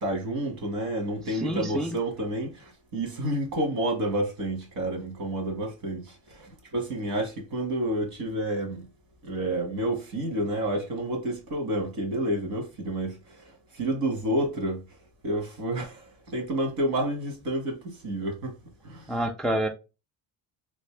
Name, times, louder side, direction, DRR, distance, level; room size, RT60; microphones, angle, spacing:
voice 1, 0.0-8.9 9.2-14.8 15.2-18.6 18.8-19.1, right 1 dB, 65° right, 1.8 m, -30 dB
voice 2, 1.3-1.9 19.1-19.7, right 1 dB, ahead, 0.3 m, -28 dB
3.3 x 2.7 x 3.2 m
cardioid pair, 125°, 38 cm